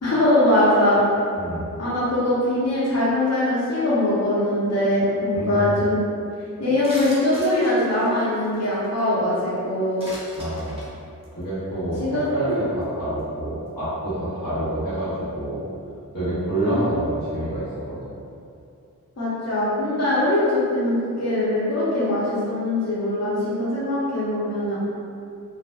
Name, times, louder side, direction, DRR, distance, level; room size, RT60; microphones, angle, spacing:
voice 1, 0.0-1.0 1.8-6.0 6.6-10.1 12.0-12.7 16.6-16.8 19.2-24.8, left 1 dB, 50° left, -9 dB, 0.8 m, -22 dB
voice 2, 1.3-1.8 5.3-5.8 10.4-10.9 11.3-15.7 16.1-18.0, right 1 dB, 85° left, -13 dB, 1.1 m, -27 dB
sound 1, 6.8-9.0 10.0-10.9 11.2-11.4 12.0-12.1 12.2-12.5 12.8-12.9, equal, 20° right, 0.7 m, -39 dB
2.5 x 2.1 x 2.3 m, 2.5 s
wide cardioid pair, 95°, 33 cm